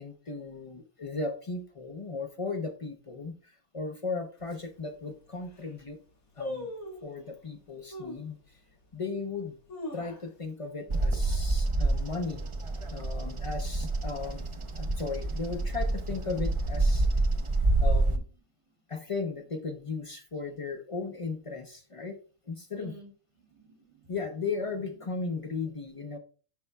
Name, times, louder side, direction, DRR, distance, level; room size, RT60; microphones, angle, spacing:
voice 1, 0.0-6.0 6.4-6.7 7.0-8.4 8.9-9.5 9.9-12.5 12.9-14.5 14.8-17.1 17.8-18.2 18.9-22.2 22.5-22.9 24.1-26.2, left 4 dB, 45° left, 5 dB, 0.4 m, -36 dB
sound 1, 4.4-4.5 5.1-5.2 5.4-5.8 6.4-7.1 7.9-8.3 8.8-8.9 9.5-10.6 10.9-11.0 11.3-11.7 12.1-12.4 13.1-13.8 14.1-14.2, left 1 dB, 90° left, 2.4 m, -40 dB
Bird vocalization bird call bird song, 10.9-18.2, right 2 dB, 55° right, 0.3 m, -28 dB
voice 2, 22.7-24.5 24.9-25.5, right 3 dB, 25° right, -1 dB, 2.3 m, -54 dB
10.0 x 5.3 x 2.2 m, 0.39 s
omnidirectional pair, 1.4 m